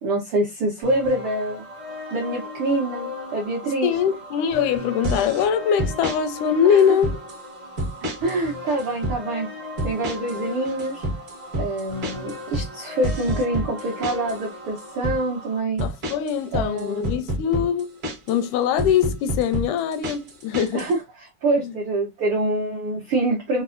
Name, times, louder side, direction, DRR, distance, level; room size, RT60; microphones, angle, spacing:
voice 1, 0.0-1.6 2.1-3.9 6.7-6.8 8.0-9.5 9.8-11.0 11.6-15.8 16.5-17.1 20.7-21.0 21.4-23.6, right 2 dB, 85° right, 1.2 m, -25 dB
sound 1, 0.8-15.6, left 2 dB, 35° right, 0.5 m, -37 dB
voice 2, 3.8-7.2 15.8-18.0 18.3-20.9 21.6-21.7, left 8 dB, 85° left, 2.1 m, -22 dB
sound 2, 5.0-5.5 5.8-6.2 6.8-7.4 7.8-8.4 8.7-9.2 9.8-10.4 10.6-14.4 14.8-15.2 15.8-18.4 18.8-20.9, right 1 dB, 65° right, 0.8 m, -28 dB
5.2 x 2.1 x 2.4 m
omnidirectional pair, 3.5 m